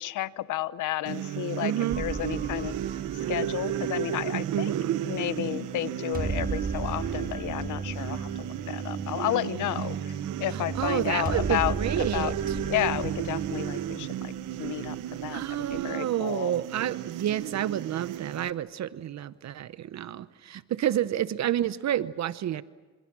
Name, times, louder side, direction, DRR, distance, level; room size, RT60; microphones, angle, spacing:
voice 1, 0.0-2.8 3.3-4.7 5.0-12.3 12.7-14.3 14.6-16.5, left 14 dB, 80° left, 16 dB, 1.0 m, -32 dB
sound 1, 1.1-18.5, right 13 dB, 90° right, 1.0 m, -34 dB
voice 2, 1.6-2.0 4.5-5.0 9.2-10.0 10.5-12.6 15.3-22.6, right 11 dB, 65° right, 15 dB, 0.8 m, -30 dB
sound 2, 1.9-14.0, right 4 dB, 30° right, 2.0 m, -36 dB
sound 3, 10.7-15.9, left 7 dB, 45° left, 1.7 m, -48 dB
29.5 x 26.5 x 6.2 m, 1.3 s
cardioid pair, 90°, 30 cm